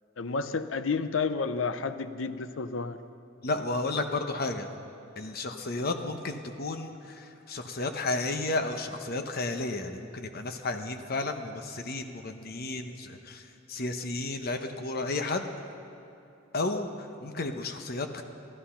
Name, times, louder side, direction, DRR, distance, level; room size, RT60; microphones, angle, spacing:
voice 1, 0.2-3.0, left 4 dB, 80° left, 11 dB, 0.6 m, -31 dB
voice 2, 3.4-4.7 5.2-13.4 13.7-15.5 16.5-18.2, left 2 dB, 50° left, 6 dB, 0.9 m, -32 dB
13.5 x 12.5 x 5.8 m, 2.9 s
head